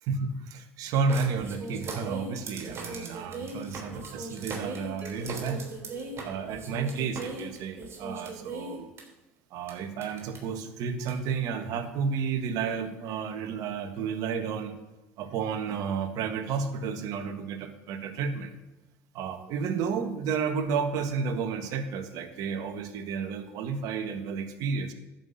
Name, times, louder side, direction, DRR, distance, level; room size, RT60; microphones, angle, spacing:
voice 1, 0.1-5.6 6.2-8.9 9.5-14.8 15.2-18.5 19.1-24.9, right 5 dB, 65° right, 8 dB, 1.5 m, -31 dB
sound 1, 1.1-9.0 9.7-9.8 10.0-10.4 11.1-11.2, right 3 dB, 40° right, 3.1 m, -39 dB
Mallet percussion, 5.0-7.9, right 4 dB, 15° right, 3.2 m, -50 dB
11.0 x 6.0 x 7.8 m, 1.1 s
hypercardioid pair, 80°, 7 cm